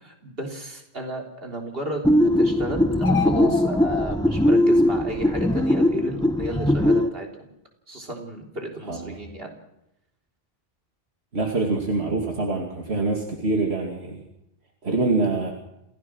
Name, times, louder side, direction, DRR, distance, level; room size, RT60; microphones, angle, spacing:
voice 1, 0.0-7.5 7.9-9.5, right 1 dB, 65° right, 2 dB, 3.9 m, -33 dB
sound 1, 2.0-7.1, left 1 dB, 5° left, 0.9 m, -20 dB
sound 2, 2.9-4.1, left 4 dB, 80° left, 2.1 m, -28 dB
voice 2, 8.9-9.2 11.3-14.2 14.8-15.5, right 3 dB, 80° right, 1 dB, 2.6 m, -25 dB
27.5 x 16.5 x 6.3 m, 0.84 s
omnidirectional pair, 1.1 m